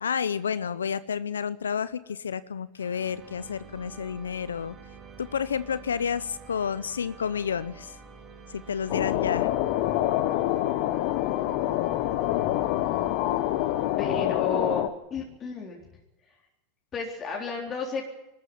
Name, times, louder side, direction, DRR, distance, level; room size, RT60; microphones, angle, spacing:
voice 1, 0.0-4.8 5.2-8.0 8.5-9.5, left 7 dB, 85° left, 16 dB, 0.6 m, -30 dB
sound 1, 2.7-14.7, right 4 dB, 35° right, 4.5 m, -48 dB
sound 2, 8.9-14.9, left 14 dB, 60° left, 1.2 m, -26 dB
voice 2, 13.8-14.9 15.1-15.8 16.9-18.0, left 3 dB, 30° left, 0 dB, 3.8 m, -32 dB
22.5 x 13.5 x 9.5 m, 0.96 s
hypercardioid pair, 90°, 0 cm